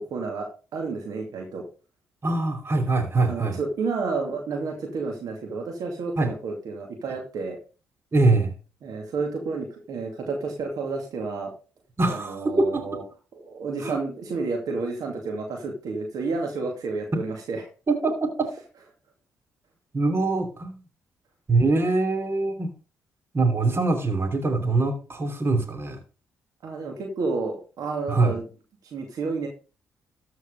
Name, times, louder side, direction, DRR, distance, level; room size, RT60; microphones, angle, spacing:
voice 1, 0.0-1.7 3.3-7.6 8.8-11.5 12.1-13.0 13.3-17.6 26.6-28.4 28.9-29.5, right 4 dB, 65° right, 1 dB, 2.5 m, -30 dB
voice 2, 2.2-3.6 6.2-6.3 8.1-8.5 12.0-13.0 13.8-14.0 17.9-18.5 19.9-20.8 21.5-22.7 23.3-26.0 28.1-28.3, right 3 dB, 35° right, 4 dB, 2.9 m, -23 dB
13.5 x 4.7 x 5.2 m, 0.35 s
hypercardioid pair, 50°, 7 cm